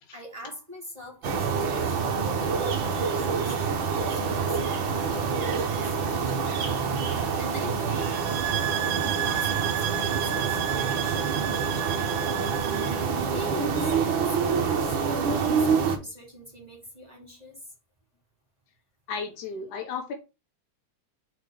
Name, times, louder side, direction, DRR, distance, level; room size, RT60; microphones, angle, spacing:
voice 1, 0.1-8.9 9.2-12.7 13.0-13.9 14.3-17.6, left 1 dB, 15° right, -2 dB, 2.5 m, -43 dB
sound 1, 1.2-16.0, right 5 dB, 55° right, 1.5 m, -27 dB
sound 2, 8.0-13.1, right 13 dB, 90° right, 1.3 m, -32 dB
voice 2, 19.1-20.1, left 5 dB, 80° left, 4 dB, 2.9 m, -34 dB
6.4 x 4.4 x 5.1 m, 0.28 s
omnidirectional pair, 3.4 m